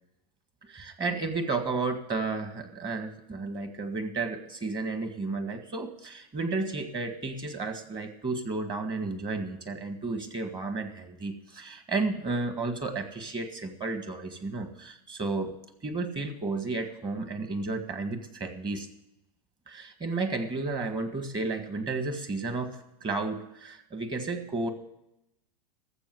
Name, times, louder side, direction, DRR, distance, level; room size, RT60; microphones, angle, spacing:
voice 1, 0.6-15.5 15.8-18.9 19.7-24.7, right 3 dB, 20° right, 7 dB, 1.7 m, -32 dB
13.0 x 7.6 x 7.7 m, 0.84 s
supercardioid pair, 135°, 20 cm